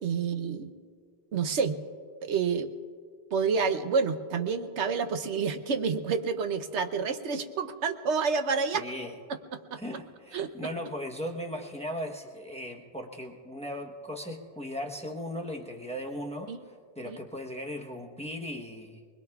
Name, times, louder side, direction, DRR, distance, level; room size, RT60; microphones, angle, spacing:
voice 1, 0.0-0.7 1.3-1.8 2.2-2.7 3.3-8.8 9.5-9.8 10.3-10.5 16.5-16.6 17.0-17.2, right 5 dB, 80° right, 8 dB, 1.1 m, -29 dB
voice 2, 8.7-9.1 9.8-19.0, equal, 5° left, 3 dB, 0.9 m, -38 dB
23.0 x 21.0 x 2.3 m, 2.1 s
omnidirectional pair, 1.1 m